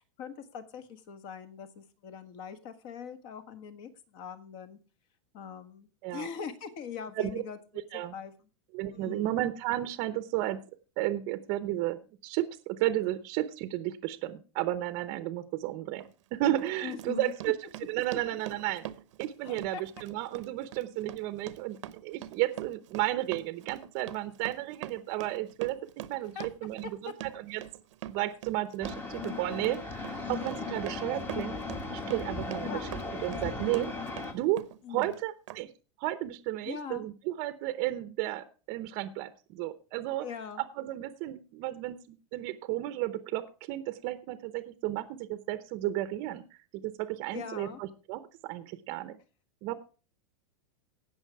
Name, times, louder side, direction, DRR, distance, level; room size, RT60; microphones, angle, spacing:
voice 1, 0.0-4.8 5.3-8.3 8.9-9.4 16.8-17.3 19.4-19.8 26.3-26.5 27.0-27.1 32.7-32.9 34.8-35.1 36.6-37.0 40.2-40.6 47.3-47.8, left 7 dB, 40° left, 10 dB, 1.6 m, -42 dB
voice 2, 8.7-10.6 11.0-16.0 16.3-17.5 17.9-18.9 19.2-21.8 22.0-25.8 26.1-27.6 28.1-31.6 32.1-32.9 33.2-33.9 34.3-34.6 34.9-35.7 36.0-40.3 40.8-49.2 49.6-49.7, right 15 dB, 40° right, 11 dB, 0.8 m, -33 dB
Run, 16.0-16.1 16.6-34.3 34.6-35.2 35.5-35.6, right 13 dB, 70° right, 0.9 m, -43 dB
sound 1, 28.8-34.3, left 3 dB, 15° left, 1.2 m, -37 dB
17.0 x 6.3 x 4.7 m, 0.35 s
supercardioid pair, 160°, 16 cm